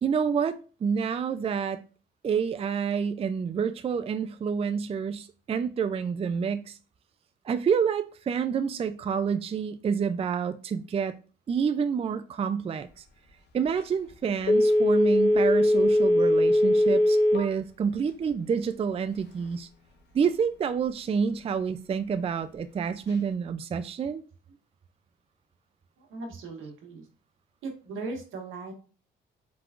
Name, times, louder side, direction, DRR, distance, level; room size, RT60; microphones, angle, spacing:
voice 1, 0.0-1.8 2.2-6.8 7.4-11.1 11.5-13.0 13.5-19.7 20.1-24.2, right 6 dB, 30° right, 0.4 m, -28 dB
Telephone, 14.4-17.5 17.9-18.0, left 1 dB, 60° left, 1.1 m, -21 dB
voice 2, 26.0-27.0 27.6-28.7, right 3 dB, 85° right, 1.4 m, -38 dB
4.5 x 3.7 x 2.4 m
cardioid pair, 90°, 20 cm